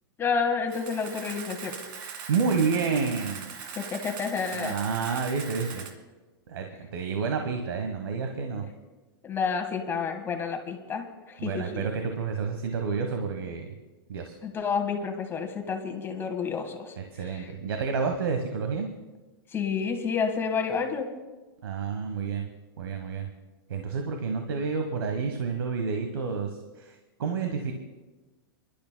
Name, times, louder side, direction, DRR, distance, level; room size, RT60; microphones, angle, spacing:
voice 1, 0.2-1.7 3.7-4.7 5.0-5.2 8.5-8.6 9.2-11.8 14.4-17.5 19.5-21.1, left 6 dB, 20° left, 4 dB, 1.5 m, -30 dB
Camera, 0.7-5.9, right 6 dB, 55° right, 2.0 m, -40 dB
voice 2, 2.3-3.5 4.5-5.9 6.5-8.6 11.4-13.7 14.1-14.3 17.1-18.9 21.6-22.5 22.8-23.3 23.7-27.7, right 5 dB, 85° right, 4 dB, 1.2 m, -29 dB
29.0 x 12.0 x 2.2 m, 1.2 s
hypercardioid pair, 130°, 12 cm